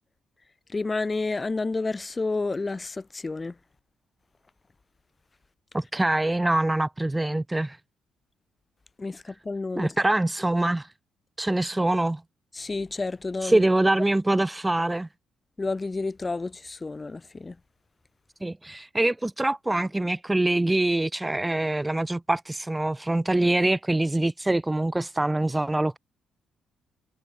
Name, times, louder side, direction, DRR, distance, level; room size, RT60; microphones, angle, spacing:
voice 1, 0.7-3.5 9.0-9.9 12.5-13.6 15.6-17.5, left 3 dB, 25° left, 2.6 m, -30 dB
voice 2, 5.7-7.8 9.8-10.9 11.4-12.2 13.4-15.1 18.4-26.0, right 2 dB, 10° right, 0.8 m, -24 dB
cardioid pair, 90°, 0 cm